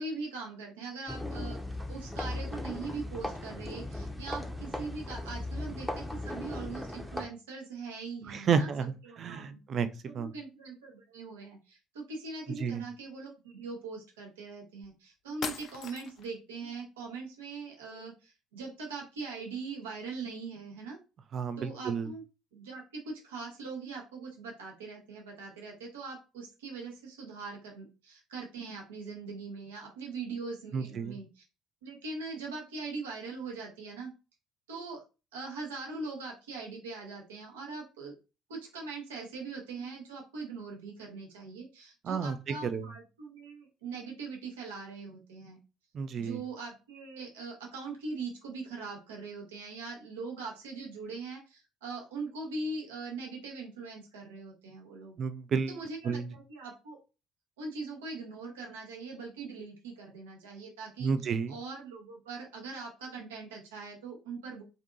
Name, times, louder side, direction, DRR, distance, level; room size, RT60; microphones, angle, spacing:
voice 1, 0.0-8.7 9.0-9.6 10.0-21.0 21.6-22.2 22.5-31.4 31.8-34.1 34.7-35.0 35.3-38.1 38.5-45.6 46.2-55.2 55.7-57.0 57.6-61.1 61.5-64.6, right 4 dB, 75° right, 0.7 m, -41 dB
sound 1, 1.1-7.3, left 1 dB, ahead, 0.6 m, -37 dB
voice 2, 8.3-9.9 10.1-10.3 12.6-12.8 21.3-22.1 30.7-31.2 42.0-42.4 42.6-42.9 45.9-46.4 55.2-55.7 56.0-56.3 61.0-61.5, right 6 dB, 45° right, 0.3 m, -31 dB
sound 2, 14.8-14.9 15.4-16.3, left 6 dB, 50° left, 0.4 m, -39 dB
2.6 x 2.5 x 2.4 m
figure-of-eight pair, 55°, 0 cm